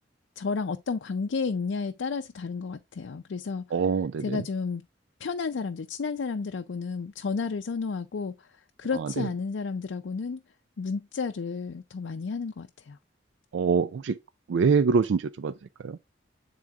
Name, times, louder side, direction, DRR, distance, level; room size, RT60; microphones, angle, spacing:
voice 1, 0.4-3.6 4.2-4.8 5.2-8.3 8.8-10.4 10.8-13.0, left 5 dB, 80° left, 0.4 m, -31 dB
voice 2, 3.7-4.4 8.9-9.3 13.5-14.2 14.5-15.5 15.8-16.0, right 5 dB, 75° right, 0.4 m, -25 dB
8.6 x 3.7 x 3.4 m
head